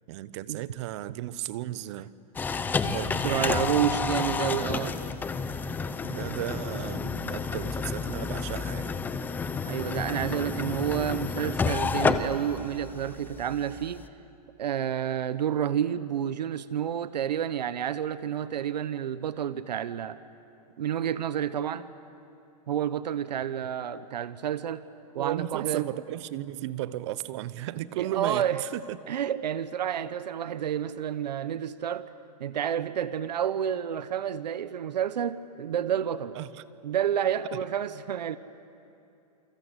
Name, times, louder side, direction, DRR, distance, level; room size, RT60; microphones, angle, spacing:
voice 1, 0.1-2.1 2.9-3.8 4.6-4.9 6.0-9.0 25.1-29.0 36.3-36.6, right 14 dB, 45° right, 17 dB, 0.9 m, -35 dB
sound 1, 2.4-14.1, left 5 dB, 10° left, 0.8 m, -30 dB
voice 2, 3.2-5.0 9.6-14.0 14.6-20.2 20.8-21.9 22.7-24.8 25.1-25.9 28.0-28.6 29.1-32.1 32.4-36.4 36.8-38.4, right 9 dB, 90° right, 14 dB, 1.0 m, -29 dB
28.5 x 26.0 x 8.2 m, 2.8 s
hypercardioid pair, 155°, 21 cm